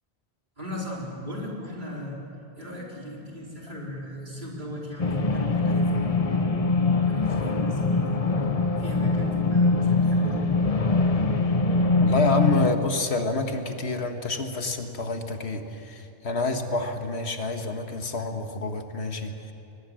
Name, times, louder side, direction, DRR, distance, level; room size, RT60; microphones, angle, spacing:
voice 1, 0.6-2.2 2.6-6.6 7.0-8.2 8.8-10.6, left 1 dB, 45° right, -3 dB, 4.4 m, -37 dB
sound 1, 5.0-12.7, left 3 dB, 35° left, 1.0 m, -23 dB
voice 2, 12.0-19.5, left 2 dB, 75° left, 6 dB, 1.8 m, -28 dB
22.5 x 20.5 x 7.7 m, 2.8 s
omnidirectional pair, 1.1 m